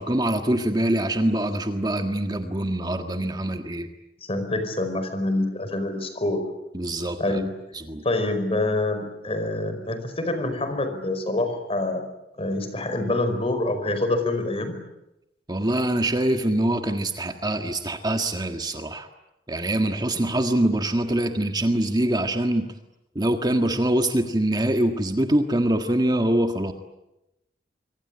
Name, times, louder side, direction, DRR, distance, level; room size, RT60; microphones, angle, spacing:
voice 1, 0.0-3.9 6.7-7.4 7.7-8.0 15.5-19.1 19.5-22.7 23.1-26.7, right 1 dB, 25° right, 5 dB, 1.7 m, -24 dB
voice 2, 4.2-6.4 7.2-7.6 8.0-12.0 12.4-14.7, left 2 dB, 35° left, 9 dB, 5.0 m, -26 dB
26.0 x 24.5 x 8.8 m, 0.90 s
head